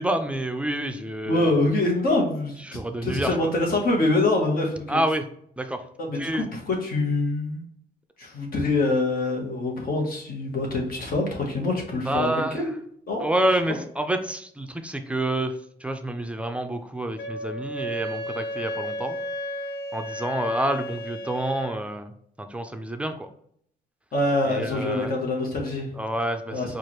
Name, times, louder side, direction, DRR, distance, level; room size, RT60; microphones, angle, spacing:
voice 1, 0.0-1.6 2.7-3.4 4.9-5.2 5.6-5.8 6.2-6.5 12.0-12.7 13.2-15.5 15.8-19.2 19.9-22.1 22.4-23.3 24.4-25.1 26.0-26.8, right 1 dB, 5° right, 7 dB, 0.4 m, -28 dB
voice 2, 1.3-2.6 3.0-5.0 6.0-7.6 8.2-12.7 13.1-13.3 13.7-13.8 24.1-25.9 26.5-26.7, left 2 dB, 60° left, 0 dB, 1.2 m, -25 dB
Wind instrument woodwind instrument, 17.2-21.8, equal, 80° left, 0.5 m, -33 dB
4.6 x 2.4 x 3.1 m, 0.66 s
cardioid pair, 115°, 17 cm